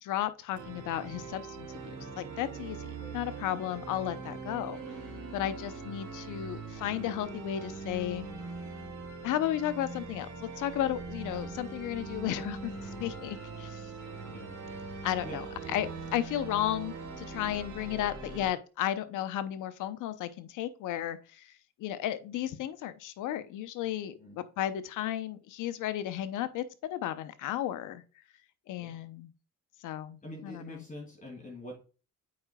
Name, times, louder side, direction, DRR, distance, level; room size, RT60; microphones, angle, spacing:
voice 1, 0.0-4.8 5.3-8.3 9.2-13.9 15.0-28.0 28.7-29.3 29.8-30.8, left 12 dB, 85° left, 12 dB, 0.7 m, -34 dB
sound 1, 0.5-18.5, right 4 dB, 75° right, 2.6 m, -42 dB
voice 2, 30.2-31.8, left 1 dB, 25° left, 0 dB, 2.8 m, -45 dB
8.5 x 5.0 x 2.3 m, 0.34 s
cardioid pair, 90°, 30 cm